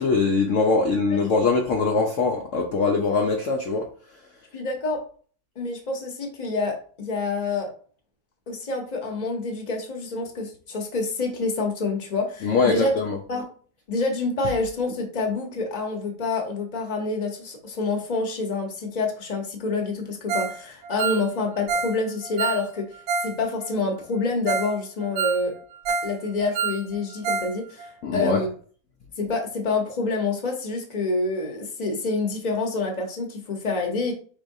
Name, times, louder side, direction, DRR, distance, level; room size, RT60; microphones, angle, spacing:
voice 1, 0.0-3.9 12.4-13.2 28.0-28.4, left 4 dB, 65° left, 0.9 m, -22 dB
voice 2, 4.5-5.0 5.6-7.7 8.5-12.9 13.3-13.4 13.9-22.9 23.2-25.5 26.0-28.5 29.2-34.1, left 3 dB, 30° left, 1.0 m, -27 dB
Ringtone, 20.3-20.6 20.8-23.4 23.6-23.7 24.2-24.3 24.5-24.7 25.0-26.2 26.4-27.5 27.8-27.9 28.3-28.4, right 5 dB, 80° right, 1.2 m, -28 dB
5.1 x 3.8 x 2.7 m
omnidirectional pair, 1.6 m